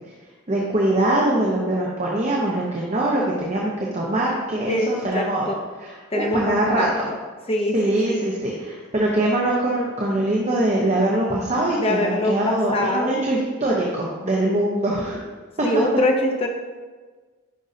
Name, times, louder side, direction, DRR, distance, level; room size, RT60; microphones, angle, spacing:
voice 1, 0.5-5.5 5.8-6.9 7.7-15.2, right 1 dB, 35° right, -3 dB, 0.8 m, -23 dB
voice 2, 4.7-5.6 6.1-6.9 7.5-8.2 11.8-13.2 15.6-16.5, left 1 dB, 30° left, 2 dB, 0.7 m, -24 dB
10.0 x 5.4 x 2.7 m, 1.4 s
head